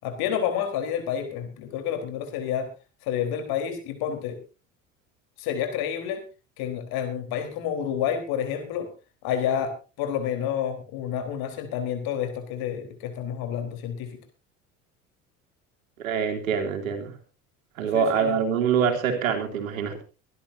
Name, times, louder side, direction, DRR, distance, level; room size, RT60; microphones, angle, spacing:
voice 1, 0.0-2.7 3.0-4.4 5.4-6.2 6.6-8.9 9.2-14.1 17.9-18.4, left 9 dB, 65° left, 6 dB, 4.2 m, -29 dB
voice 2, 16.0-17.1 17.8-20.0, right 7 dB, 85° right, 4 dB, 2.9 m, -25 dB
24.5 x 11.5 x 2.7 m, 0.31 s
hypercardioid pair, 65°, 40 cm